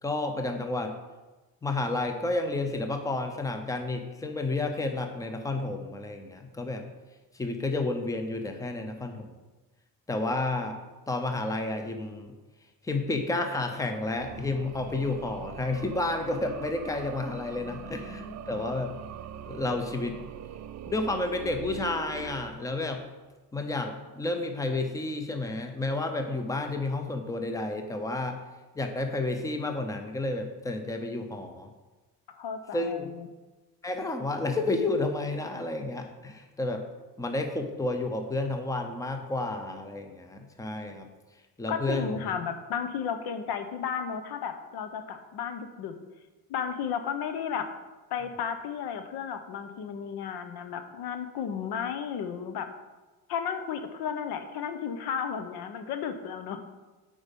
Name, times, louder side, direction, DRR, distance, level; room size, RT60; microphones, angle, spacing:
voice 1, 0.0-1.0 1.6-6.9 7.3-9.3 10.1-10.8 11.1-12.3 12.8-18.9 19.5-20.2 20.9-23.0 23.5-28.4 28.7-31.7 32.7-33.1 33.8-36.8 37.2-41.1 41.6-42.2, left 2 dB, 10° left, 5 dB, 0.7 m, -31 dB
sound 1, 14.1-23.1, right 9 dB, 45° right, 0.4 m, -42 dB
voice 2, 17.6-18.7 32.3-33.3 41.7-46.0 46.5-47.7 48.1-52.7 53.3-56.6, left 7 dB, 80° left, 8 dB, 0.9 m, -34 dB
8.4 x 5.0 x 5.3 m, 1.2 s
cardioid pair, 130°, 38 cm